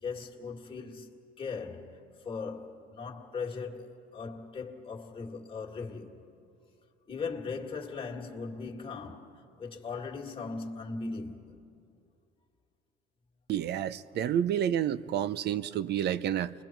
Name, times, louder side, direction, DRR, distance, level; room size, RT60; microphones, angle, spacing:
voice 1, 0.0-1.1 1.4-6.1 7.1-11.6, left 4 dB, 25° left, 2.2 m, -39 dB
voice 2, 13.5-16.5, right 10 dB, 55° right, 0.6 m, -29 dB
29.5 x 22.0 x 4.6 m
cardioid pair, 115°, 20 cm